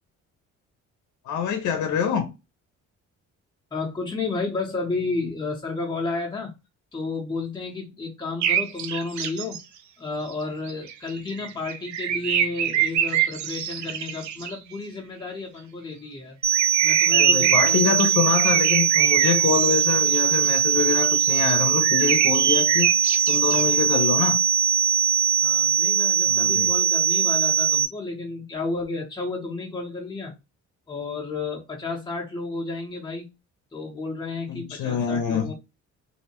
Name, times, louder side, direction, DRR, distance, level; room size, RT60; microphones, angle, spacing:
voice 1, 1.2-2.3 17.1-22.9 23.3-24.4 26.2-26.7 34.5-35.5, left 7 dB, 70° left, 0.6 m, -25 dB
voice 2, 3.7-6.5 6.9-9.6 10.0-16.4 16.8-18.1 25.4-30.3 30.9-33.3 33.7-35.5, left 3 dB, 15° left, 0.7 m, -32 dB
sound 1, 8.4-9.6 10.3-10.4 10.7-14.6 16.5-20.6 21.0-21.5 21.8-23.6, right 8 dB, 70° right, 0.6 m, -25 dB
sound 2, 16.4-27.9, right 8 dB, 20° right, 0.6 m, -21 dB
2.6 x 2.0 x 2.8 m
cardioid pair, 90°, 30 cm